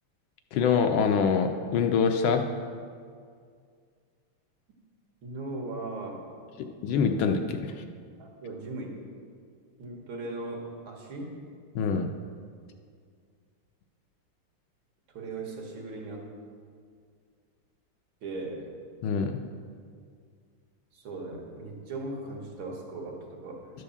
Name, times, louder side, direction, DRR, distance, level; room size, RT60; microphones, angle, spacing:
voice 1, 0.5-2.5 6.6-7.7 11.7-12.1 19.0-19.4, left 6 dB, 75° left, 5 dB, 1.3 m, -25 dB
voice 2, 5.2-6.4 8.2-8.9 9.8-11.4 15.1-16.3 18.2-18.7 20.9-23.7, right 2 dB, 70° right, 0 dB, 2.1 m, -38 dB
11.5 x 4.7 x 6.9 m, 2.1 s
omnidirectional pair, 2.4 m